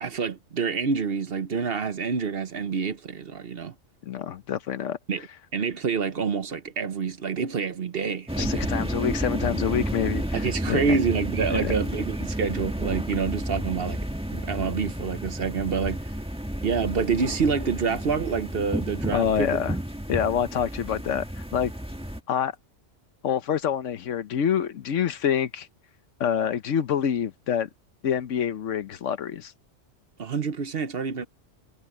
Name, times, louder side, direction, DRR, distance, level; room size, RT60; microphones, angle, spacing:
voice 1, 0.0-3.7 5.1-5.3 5.5-8.8 10.3-14.0 14.3-16.1 16.6-19.6 30.2-31.2, right 5 dB, 55° right, 1.1 m, -27 dB
voice 2, 4.0-5.0 8.4-10.8 11.5-11.7 19.1-19.7 20.1-21.7 22.3-22.5 23.2-25.7 26.2-27.7 28.0-29.5, left 8 dB, 75° left, 1.2 m, -26 dB
sound 1, 8.3-22.2, equal, 5° right, 1.7 m, -31 dB
omnidirectional pair, 1.3 m